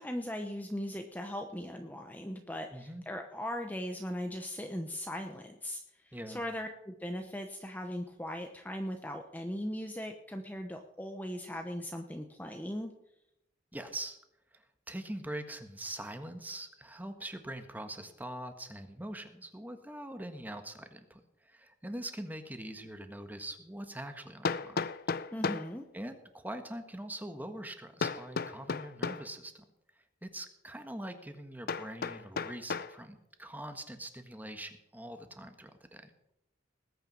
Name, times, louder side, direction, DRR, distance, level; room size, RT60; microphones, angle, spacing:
voice 1, 0.0-12.9 25.3-25.9, equal, 10° left, 4 dB, 0.9 m, -39 dB
voice 2, 2.7-3.0 6.1-6.4 13.7-14.2 14.5-24.9 25.9-29.6 30.2-36.1, right 1 dB, 10° right, 7 dB, 1.4 m, -43 dB
Hammer, 22.8-22.9 24.4-25.7 28.0-29.3 31.7-33.0, left 4 dB, 55° left, 0.6 m, -34 dB
20.0 x 9.1 x 5.4 m, 0.84 s
head